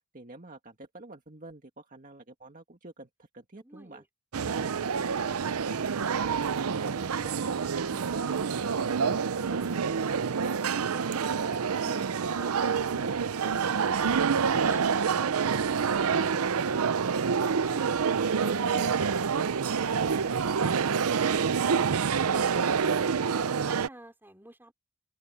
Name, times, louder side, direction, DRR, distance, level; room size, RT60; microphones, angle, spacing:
voice 1, 0.1-4.0 4.8-12.1, right 2 dB, 40° right, 1.9 m, -47 dB
voice 2, 3.5-4.1 14.7-14.9 23.0-24.7, right 1 dB, 10° right, 4.4 m, -50 dB
sound 1, 4.3-23.9, right 6 dB, 90° right, 0.6 m, -27 dB
open air
head